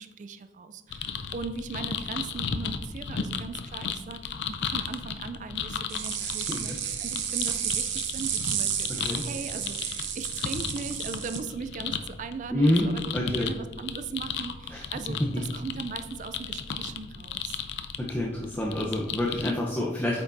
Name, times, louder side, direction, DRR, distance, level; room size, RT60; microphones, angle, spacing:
voice 1, 0.0-6.7 7.0-17.6, right 4 dB, 45° right, 10 dB, 0.3 m, -39 dB
sound 1, 0.9-19.5, left 6 dB, 70° left, 0.4 m, -35 dB
sound 2, 5.9-11.4, right 9 dB, 80° right, 0.8 m, -32 dB
voice 2, 6.2-6.8 9.0-9.2 12.5-13.5 14.7-15.4 18.0-20.2, left 1 dB, 10° left, -3 dB, 0.7 m, -28 dB
8.3 x 5.8 x 2.6 m, 1.2 s
head